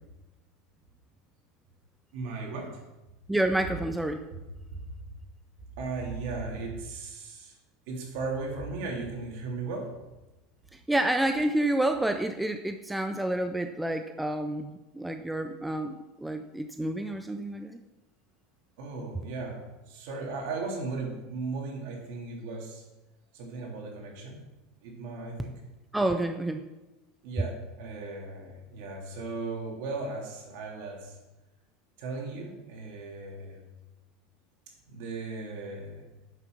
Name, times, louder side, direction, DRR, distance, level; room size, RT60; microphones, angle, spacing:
voice 1, 2.1-2.8 4.3-4.4 4.7-5.0 5.8-7.5 7.9-9.9 18.8-22.8 23.3-24.4 24.8-25.5 27.2-31.2 32.0-33.7 34.8-36.1, right 3 dB, 55° right, 0 dB, 3.0 m, -37 dB
voice 2, 3.3-4.2 10.7-17.8 25.9-26.6, right 1 dB, 5° right, 7 dB, 0.4 m, -29 dB
10.5 x 6.6 x 6.1 m, 1.1 s
supercardioid pair, 175°, 0 cm